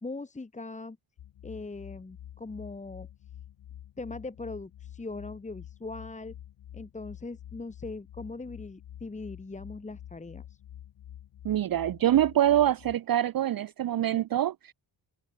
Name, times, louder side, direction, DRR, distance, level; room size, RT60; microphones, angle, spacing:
voice 1, 0.0-1.0 1.4-3.1 4.0-6.4 6.7-10.6, left 3 dB, 15° left, 1.8 m, -40 dB
sound 1, 1.2-13.0, left 11 dB, 85° left, 5.7 m, -48 dB
voice 2, 11.4-14.7, right 12 dB, 50° right, 0.6 m, -25 dB
wide cardioid pair, 165°, 47 cm